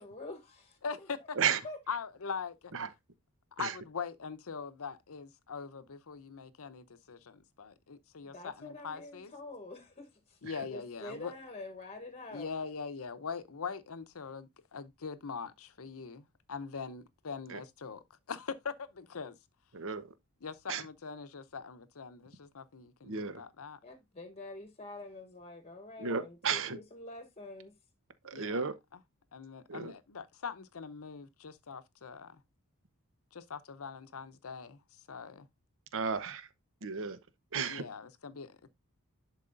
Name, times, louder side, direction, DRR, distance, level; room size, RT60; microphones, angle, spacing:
voice 1, 0.0-1.1 1.4-1.8 8.2-10.4 10.7-12.5 23.8-27.8, left 2 dB, 30° left, 1.1 m, -46 dB
voice 2, 0.8-1.4 1.9-2.7 3.6-9.3 10.4-11.3 12.3-19.4 20.4-23.8 28.3-28.7 29.3-32.4 33.3-34.8 35.1-35.5 37.7-38.7, left 5 dB, 70° left, 0.7 m, -42 dB
voice 3, 19.7-20.1 20.7-20.8 23.0-23.4 26.0-26.8 28.2-28.7 29.7-29.9 35.9-36.5 36.8-37.2 37.5-37.8, right 6 dB, 60° right, 1.0 m, -33 dB
10.5 x 4.8 x 2.5 m
head